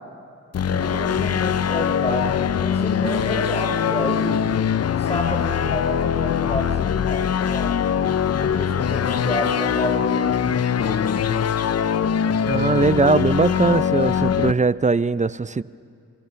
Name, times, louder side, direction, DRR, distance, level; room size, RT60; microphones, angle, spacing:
sound 1, 0.5-14.5, left 8 dB, 50° left, 0.7 m, -22 dB
voice 1, 0.6-4.5 5.0-7.8 8.4-11.0, left 1 dB, 20° left, 2 dB, 6.8 m, -30 dB
voice 2, 12.5-15.6, right 4 dB, 20° right, 17 dB, 0.6 m, -20 dB
29.5 x 26.5 x 7.1 m, 2.4 s
cardioid pair, 60°, 32 cm